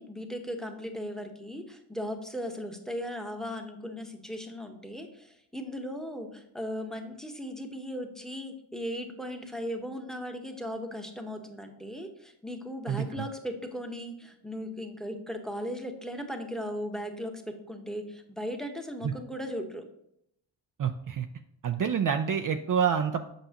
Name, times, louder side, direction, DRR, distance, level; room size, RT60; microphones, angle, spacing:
voice 1, 0.0-19.8, equal, ahead, 5 dB, 1.1 m, -37 dB
voice 2, 12.9-13.3 19.0-19.1 20.8-21.3 21.6-23.2, right 7 dB, 45° right, 7 dB, 0.5 m, -27 dB
7.9 x 5.5 x 2.9 m, 0.76 s
cardioid pair, 70°, 46 cm